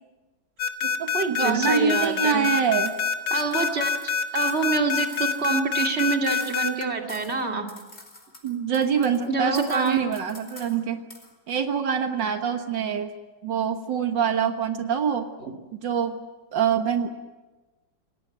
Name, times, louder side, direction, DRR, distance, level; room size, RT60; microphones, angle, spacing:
sound 1, 0.6-6.8, left 6 dB, 80° left, 2.5 m, -25 dB
voice 1, 0.8-2.9 8.4-11.0 11.5-13.1 13.4-15.3 15.7-16.2 16.5-17.1, right 7 dB, 85° right, 7 dB, 2.1 m, -25 dB
voice 2, 1.4-2.4 3.3-3.9 4.3-7.7 9.3-10.0 15.4-15.5, right 4 dB, 35° right, 3 dB, 2.7 m, -26 dB
sound 2, 2.0-2.2 2.5-4.7 4.9-6.8 7.1-7.4 7.7-9.3 9.5-10.8 11.1-11.3, left 2 dB, 35° left, 3.7 m, -46 dB
28.0 x 17.5 x 9.2 m, 1.2 s
omnidirectional pair, 1.9 m